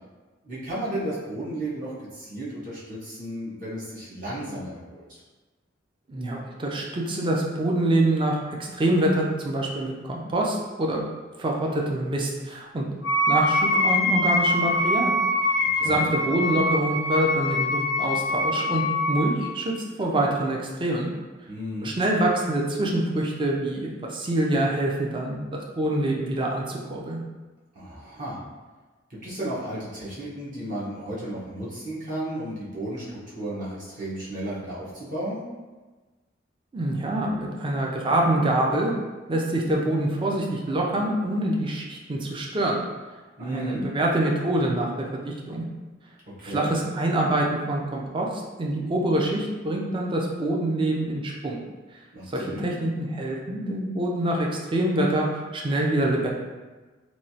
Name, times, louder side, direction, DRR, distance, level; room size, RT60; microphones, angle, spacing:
voice 1, 0.4-5.2 15.6-16.1 21.5-21.9 27.7-28.4 29.2-35.4 43.4-43.8 46.4-46.7 52.1-52.6, right 1 dB, 40° right, -8 dB, 0.8 m, -33 dB
voice 2, 6.1-8.4 8.7-11.0 11.4-12.9 13.3-15.2 15.8-21.1 21.8-27.2 36.7-38.9 39.3-42.8 43.4-44.9 45.2-45.6 46.4-51.6 52.3-56.3, right 1 dB, 25° right, -1 dB, 0.4 m, -25 dB
Wind instrument woodwind instrument, 13.0-19.4, left 1 dB, 80° left, 0.5 m, -24 dB
3.0 x 2.2 x 2.7 m, 1.3 s
head